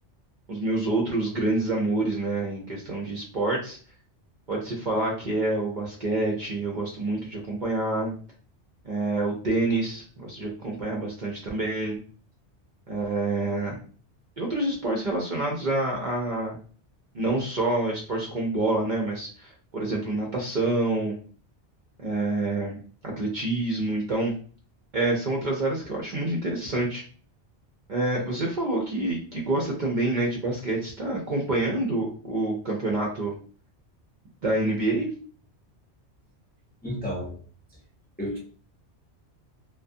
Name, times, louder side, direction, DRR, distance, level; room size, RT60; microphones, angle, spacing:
voice 1, 0.5-3.8 4.5-8.1 8.8-12.0 12.9-13.8 14.4-16.6 17.1-21.2 22.0-24.3 24.9-27.0 27.9-33.3 34.4-35.1, right 2 dB, 55° right, 0.6 m, -27 dB
voice 2, 36.8-37.4 38.2-38.4, equal, 10° left, 0.5 m, -31 dB
2.4 x 2.3 x 2.6 m
omnidirectional pair, 1.2 m